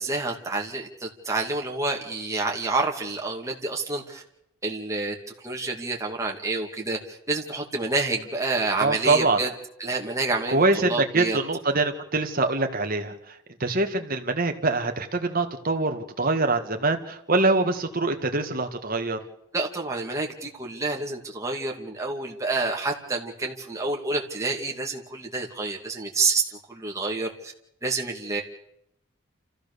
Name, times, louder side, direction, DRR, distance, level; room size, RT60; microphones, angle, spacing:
voice 1, 0.0-4.2 4.6-9.5 9.8-11.4 19.5-27.5 27.8-28.4, right 3 dB, 15° right, 0 dB, 2.6 m, -28 dB
voice 2, 8.8-9.4 10.5-19.2, right 3 dB, 40° right, 5 dB, 1.8 m, -24 dB
29.0 x 15.0 x 6.9 m, 0.79 s
head